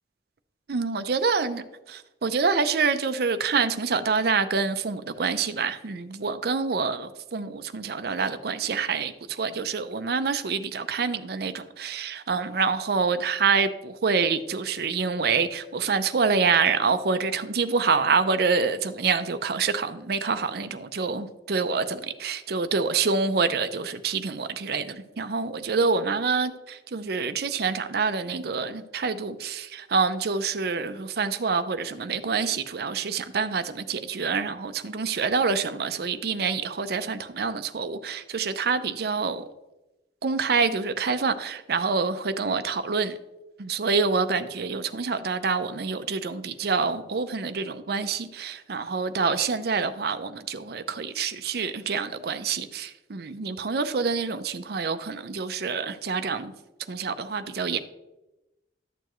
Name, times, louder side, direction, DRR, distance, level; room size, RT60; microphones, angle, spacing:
voice 1, 0.7-39.5 40.2-43.2 43.6-56.5 56.9-57.8, right 5 dB, 60° right, 0.5 m, -26 dB
12.0 x 6.8 x 3.1 m
head